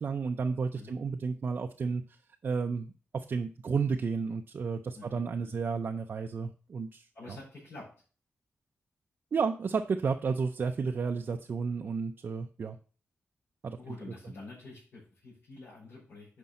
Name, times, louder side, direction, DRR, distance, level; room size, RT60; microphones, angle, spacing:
voice 1, 0.0-2.0 2.4-2.9 3.3-7.4 9.3-12.8 13.6-13.8, right 5 dB, 50° right, 4 dB, 0.5 m, -32 dB
voice 2, 4.9-5.6 7.1-7.9 13.8-16.4, left 3 dB, 65° left, -8 dB, 5.1 m, -48 dB
9.4 x 5.3 x 4.2 m, 0.39 s
wide cardioid pair, 145°, 4 cm